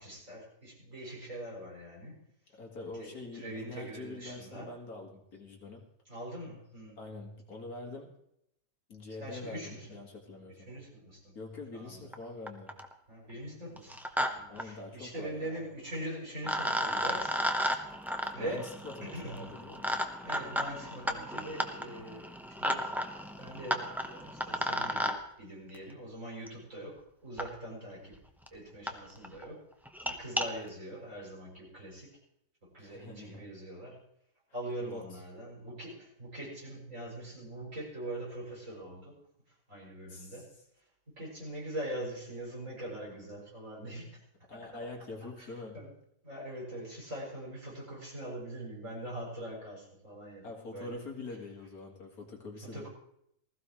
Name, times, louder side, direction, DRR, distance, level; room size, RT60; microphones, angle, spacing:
voice 1, 0.0-2.2 2.9-4.7 6.1-7.0 9.2-9.9 10.5-11.4 11.7-12.1 13.1-17.4 18.3-18.8 19.0-19.5 20.2-22.3 22.6-22.9 23.3-28.2 28.5-29.7 30.1-32.2 32.7-34.0 34.5-39.2 39.7-40.5 41.1-44.2 44.5-44.8 45.4-45.5 45.7-45.9 46.2-50.5 50.7-51.0 52.7-52.9, right 1 dB, 45° right, -4 dB, 7.4 m, -42 dB
voice 2, 2.5-5.9 7.0-8.2 8.9-10.7 11.4-12.7 14.5-15.5 18.4-19.9 32.8-33.4 34.8-35.2 40.1-40.4 44.5-45.8 50.4-52.9, left 3 dB, 60° left, 1 dB, 2.3 m, -44 dB
sound 1, 12.1-12.2 12.5-12.9 13.8-14.3 14.6-14.7 15.9-16.0 16.4-25.2 26.5-26.6 27.4-27.5 28.1-28.2 28.5-28.6 28.9-29.0 29.2-29.4 29.9-30.5, equal, ahead, 0.8 m, -33 dB
20.0 x 15.0 x 3.2 m, 0.76 s
omnidirectional pair, 1.8 m